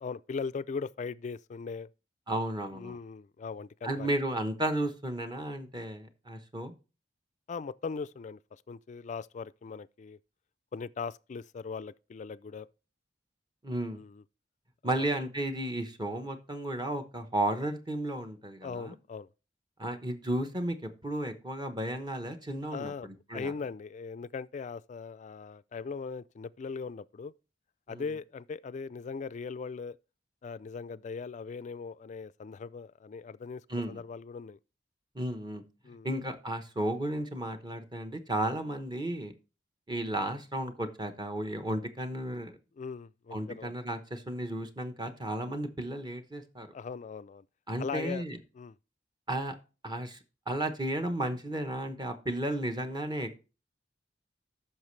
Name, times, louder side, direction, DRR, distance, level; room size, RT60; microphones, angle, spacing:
voice 1, 0.0-1.9 2.7-4.1 7.5-10.2 10.7-12.7 14.0-14.2 14.8-15.1 18.6-19.3 22.7-23.1 23.3-27.3 27.9-30.0 30.4-34.6 35.8-36.1 42.8-43.7 46.7-47.4 47.8-48.3 48.6-48.8, left 5 dB, 40° left, 0.3 m, -39 dB
voice 2, 2.3-3.0 3.8-6.7 13.6-14.0 14.8-19.0 19.8-23.5 27.9-28.0 33.7-34.0 35.1-35.6 36.0-39.3 39.9-42.6 43.3-46.7 47.7-48.4 49.3-49.6 49.8-50.2 50.5-53.4, right 1 dB, 25° right, 0.9 m, -33 dB
13.5 x 5.9 x 3.2 m
head